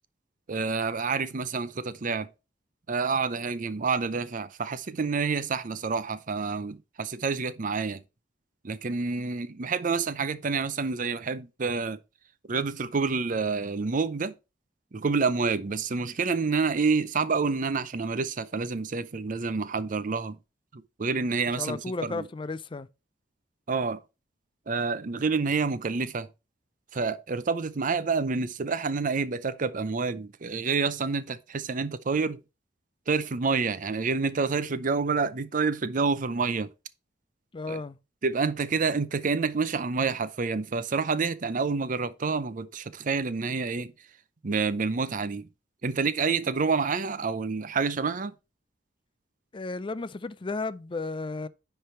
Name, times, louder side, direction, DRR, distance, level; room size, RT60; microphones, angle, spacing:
voice 1, 0.5-2.3 2.9-8.0 8.6-12.0 12.5-14.3 14.9-20.4 20.7-22.2 23.7-24.0 24.7-26.3 26.9-32.4 33.1-36.7 37.7-37.8 38.2-43.9 44.4-45.5 45.8-48.3, right 4 dB, 45° right, 0.6 m, -28 dB
voice 2, 21.5-22.9 37.5-38.0 49.5-51.5, left 3 dB, 30° left, 0.4 m, -34 dB
10.0 x 3.4 x 4.4 m
head